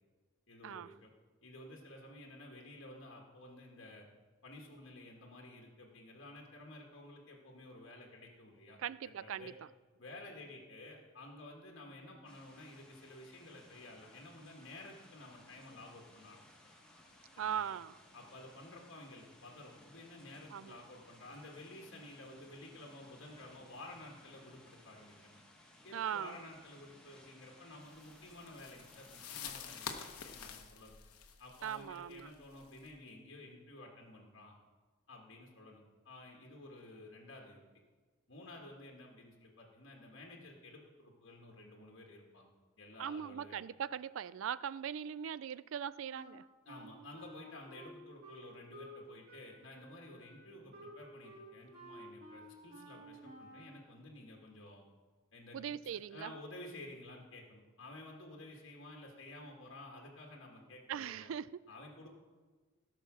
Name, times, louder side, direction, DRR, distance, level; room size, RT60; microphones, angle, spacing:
voice 1, 0.5-1.1 1.4-4.1 4.4-9.5 10.0-16.4 17.4-17.7 18.1-25.4 25.8-31.0 31.4-34.5 35.1-37.6 38.3-42.5 42.8-43.8 46.7-54.8 55.3-55.6 55.9-61.3 61.7-62.1, left 1 dB, 55° left, 0 dB, 1.7 m, -52 dB
voice 2, 8.8-9.5 17.4-18.0 20.5-20.8 25.9-26.4 31.6-32.3 43.0-46.4 55.5-56.3 60.9-61.5, right 8 dB, 65° right, 19 dB, 0.3 m, -40 dB
sound 1, 12.2-30.5, left 1 dB, 5° left, 1.4 m, -61 dB
sound 2, 28.0-32.9, left 7 dB, 90° left, 1.1 m, -48 dB
Wind instrument woodwind instrument, 46.1-49.0 49.3-53.8, right 1 dB, 45° right, 3.1 m, -53 dB
17.0 x 5.7 x 6.2 m, 1.4 s
head